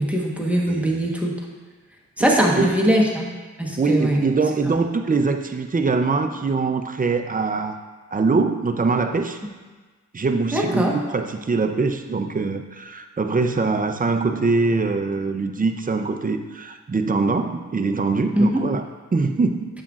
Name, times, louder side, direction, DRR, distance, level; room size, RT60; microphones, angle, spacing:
voice 1, 0.0-1.4 2.2-3.3 3.6-4.2 4.6-4.7 10.5-10.9 18.4-18.7, right 1 dB, 5° right, -2 dB, 1.2 m, -21 dB
voice 2, 2.2-2.7 3.8-7.8 8.1-9.4 10.1-18.8 19.1-19.6, right 4 dB, 30° right, 7 dB, 0.6 m, -23 dB
8.5 x 7.4 x 2.5 m, 1.3 s
cardioid pair, 60°, 30 cm